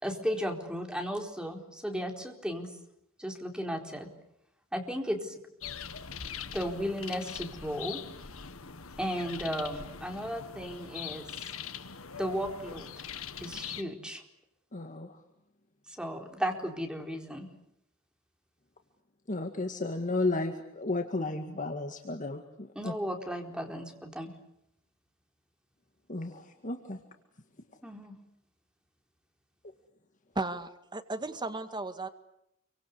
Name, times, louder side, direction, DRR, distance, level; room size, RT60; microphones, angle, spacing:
voice 1, 0.0-2.7 3.2-4.1 4.7-5.3 6.5-8.0 9.0-11.3 12.2-12.9 13.4-14.2 15.9-17.5 22.8-24.3 27.8-28.1, equal, 5° right, 3 dB, 4.2 m, -35 dB
sound 1, 5.6-13.8, left 7 dB, 75° left, 1.7 m, -42 dB
voice 2, 14.7-15.2 19.3-22.9 26.1-27.0, left 2 dB, 40° left, 5 dB, 2.0 m, -33 dB
voice 3, 30.4-32.1, right 2 dB, 20° right, 8 dB, 2.0 m, -35 dB
28.0 x 25.0 x 8.4 m, 0.79 s
head